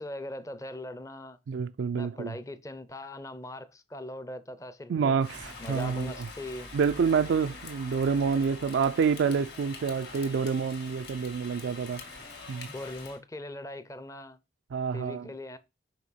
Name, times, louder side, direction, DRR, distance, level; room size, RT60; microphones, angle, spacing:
voice 1, 0.0-1.4 1.9-5.2 5.6-6.7 12.7-14.4 14.9-15.6, left 1 dB, 15° left, 0.6 m, -40 dB
voice 2, 1.5-2.3 4.9-6.1 6.7-12.0 12.5-12.7 14.7-15.3, right 6 dB, 70° right, 0.3 m, -28 dB
Rain, 5.2-13.2, left 4 dB, 55° left, 2.0 m, -45 dB
6.0 x 4.8 x 5.6 m
head